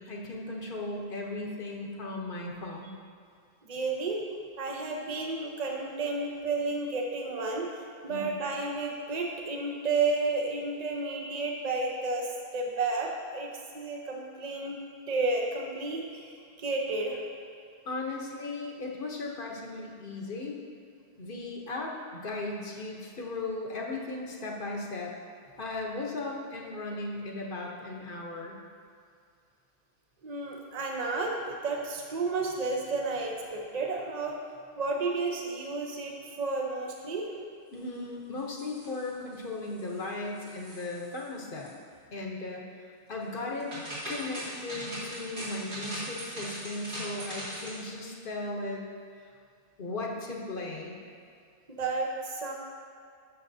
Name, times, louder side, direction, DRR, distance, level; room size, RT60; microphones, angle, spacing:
voice 1, 0.0-3.0 8.1-8.3 17.8-20.6 21.2-25.1 25.6-28.6 37.7-41.7 42.1-43.7 44.1-48.8 49.2-49.3 49.8-51.0, left 2 dB, 55° left, -1 dB, 1.1 m, -37 dB
voice 2, 3.7-4.2 4.6-7.7 8.0-12.3 12.5-13.5 13.7-14.8 15.1-16.3 16.6-17.2 30.2-34.4 34.8-37.2 51.8-52.5, right 3 dB, 40° right, 0 dB, 0.9 m, -31 dB
sound 1, 38.4-39.3 39.7-40.1 40.3-41.3 41.5-41.7 43.3-47.9, right 1 dB, 80° right, 2.7 m, -40 dB
12.5 x 6.4 x 2.7 m, 2.3 s
omnidirectional pair, 1.1 m